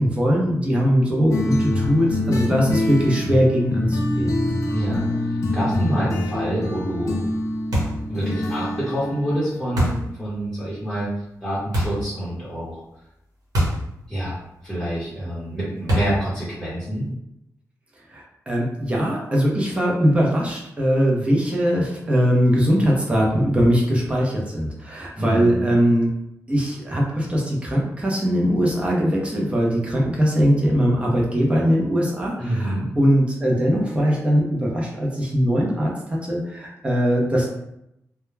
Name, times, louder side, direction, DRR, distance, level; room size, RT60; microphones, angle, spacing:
voice 1, 0.0-4.3 18.1-26.1 26.5-37.5, equal, 20° right, -2 dB, 0.6 m, -21 dB
sound 1, 1.3-9.8, left 1 dB, 55° left, 0.5 m, -25 dB
voice 2, 4.7-7.2 8.1-11.1 11.4-12.8 14.1-14.4 14.6-17.1 25.1-25.7 32.4-32.9, right 1 dB, ahead, -11 dB, 0.9 m, -27 dB
sound 2, 7.7-8.1 9.8-10.1 11.7-12.1 13.5-13.9 14.2-14.3 15.9-16.3, equal, 85° right, 1.0 m, -23 dB
2.2 x 2.2 x 3.2 m, 0.82 s
wide cardioid pair, 140°, 6 cm